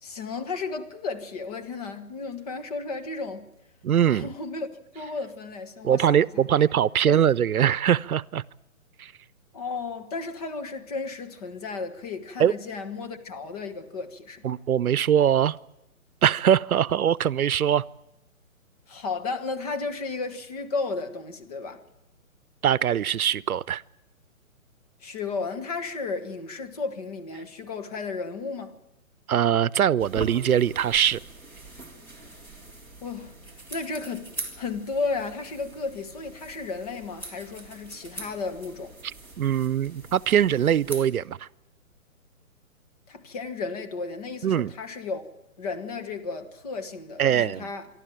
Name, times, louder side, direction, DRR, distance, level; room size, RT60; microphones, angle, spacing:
voice 1, 0.0-3.5 4.1-4.7 4.9-6.6 7.0-7.2 9.5-14.5 18.9-21.8 25.0-28.8 33.0-33.3 33.7-38.9 43.1-45.2 45.6-47.9, left 4 dB, 25° left, 1.4 m, -33 dB
voice 2, 3.8-4.3 5.8-8.4 9.0-9.1 12.4-12.5 14.4-15.6 16.2-17.8 22.6-23.8 29.3-31.2 39.4-41.5 44.4-44.7 47.2-47.7, right 9 dB, 90° right, 0.7 m, -22 dB
sound 1, 30.0-41.1, right 2 dB, 5° left, 1.7 m, -43 dB
26.0 x 12.5 x 9.1 m
hypercardioid pair, 165°, 42 cm